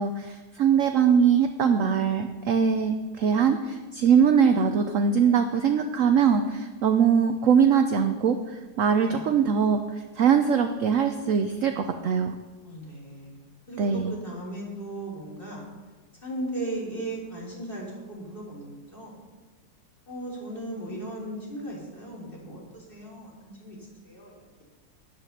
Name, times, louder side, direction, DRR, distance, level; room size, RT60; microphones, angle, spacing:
voice 1, 0.0-12.4 13.8-14.1, right 7 dB, 65° right, 7 dB, 0.8 m, -22 dB
voice 2, 12.6-15.7 16.2-19.1 20.1-23.8 24.0-24.3, right 1 dB, 30° left, -4 dB, 3.7 m, -37 dB
10.5 x 9.3 x 6.6 m, 1.3 s
omnidirectional pair, 2.0 m